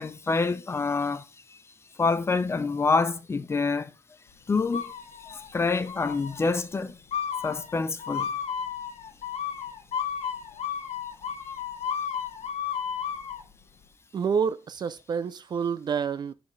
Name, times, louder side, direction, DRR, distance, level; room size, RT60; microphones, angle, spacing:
voice 1, 0.0-1.6 2.0-3.9 4.5-4.9 5.3-7.0 7.4-8.3, left 4 dB, 25° left, 0.5 m, -27 dB
sound 1, 4.7-5.5 5.9-6.4 7.1-13.4, left 8 dB, 70° left, 1.1 m, -33 dB
voice 2, 14.1-16.3, right 6 dB, 40° right, 0.4 m, -28 dB
11.0 x 4.2 x 3.2 m
wide cardioid pair, 175°, 11 cm